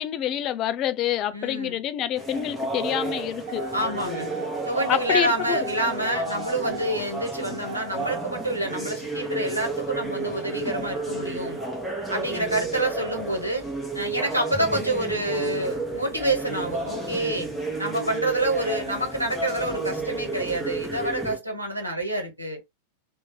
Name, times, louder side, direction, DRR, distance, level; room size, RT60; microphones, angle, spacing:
voice 1, 0.0-3.7 4.9-5.7, left 11 dB, 35° left, 0.4 m, -27 dB
voice 2, 1.3-1.8 3.7-4.3 4.7-11.6 12.1-13.7 13.9-17.5 17.8-22.6, right 1 dB, 85° right, 1.4 m, -27 dB
sound 1, 2.2-21.4, right 2 dB, 5° left, 1.1 m, -32 dB
sound 2, 3.1-7.0, right 7 dB, 50° right, 0.4 m, -37 dB
3.0 x 2.7 x 3.7 m
figure-of-eight pair, 90°, 0 cm